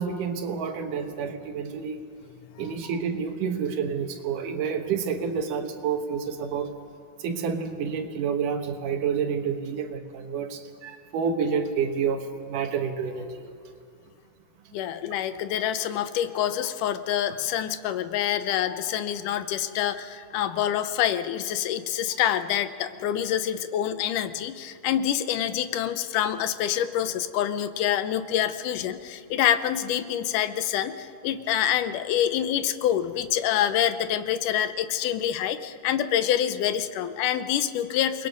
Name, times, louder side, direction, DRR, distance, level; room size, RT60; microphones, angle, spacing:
voice 1, 0.0-2.0 2.6-6.7 7.2-13.4, right 6 dB, 85° right, 6 dB, 2.9 m, -29 dB
voice 2, 14.7-38.3, left 10 dB, 85° left, 11 dB, 2.4 m, -26 dB
29.0 x 21.0 x 5.4 m, 2.3 s
omnidirectional pair, 3.6 m